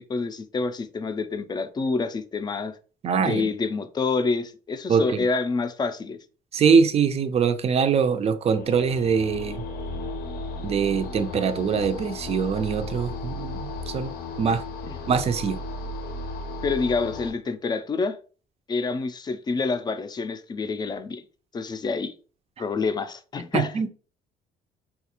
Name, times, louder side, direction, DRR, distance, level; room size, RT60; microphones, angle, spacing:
voice 1, 0.0-2.8 3.2-6.2 14.5-14.6 14.9-15.0 16.6-18.2 18.7-21.2 21.5-22.1 22.6-23.7, left 4 dB, 25° left, 0.4 m, -27 dB
voice 2, 3.0-3.5 4.9-5.2 6.5-9.6 10.6-14.1 14.4-14.6 15.1-15.6 23.5-23.9, right 6 dB, 35° right, 0.4 m, -23 dB
sound 1, 8.5-17.3, left 2 dB, 70° left, 0.6 m, -35 dB
4.0 x 2.3 x 2.9 m
cardioid pair, 110°, 17 cm